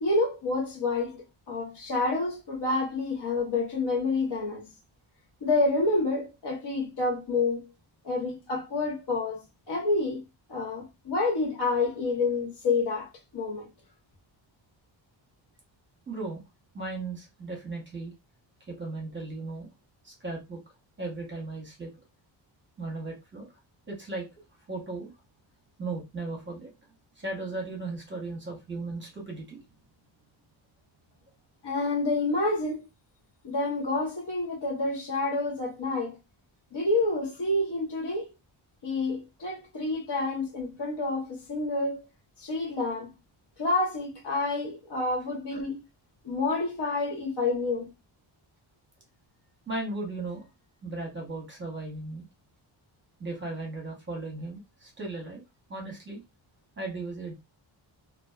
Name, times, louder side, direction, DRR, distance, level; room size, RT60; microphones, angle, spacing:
voice 1, 0.0-4.7 5.4-7.7 8.0-10.2 10.5-13.7 31.6-32.9 33.4-36.2 36.7-38.3 38.8-42.0 42.4-43.1 43.6-45.8 46.2-47.9, left 3 dB, 60° left, 0.9 m, -28 dB
voice 2, 16.1-16.4 16.7-18.1 18.7-19.7 20.0-20.6 21.0-21.9 22.8-23.5 23.9-24.3 24.7-25.1 25.8-26.7 27.2-29.6 49.7-50.5 50.8-52.2 53.2-55.4 55.7-56.2 56.8-57.3, right 2 dB, 25° right, 0.9 m, -36 dB
2.4 x 2.2 x 2.3 m
wide cardioid pair, 115°, 47 cm